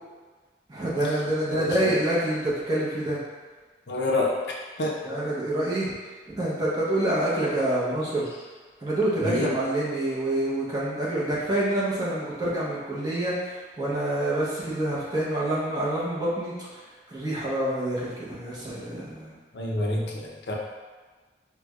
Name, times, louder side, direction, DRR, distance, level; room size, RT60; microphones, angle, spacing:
voice 1, 0.7-3.2 5.0-5.9 6.3-8.3 8.8-19.3, right 1 dB, 25° right, -8 dB, 0.8 m, -27 dB
voice 2, 1.5-1.9 3.9-4.3 4.8-4.9 9.2-9.5 19.5-20.5, left 2 dB, 75° left, -2 dB, 0.5 m, -27 dB
4.6 x 2.2 x 2.4 m, 1.4 s
head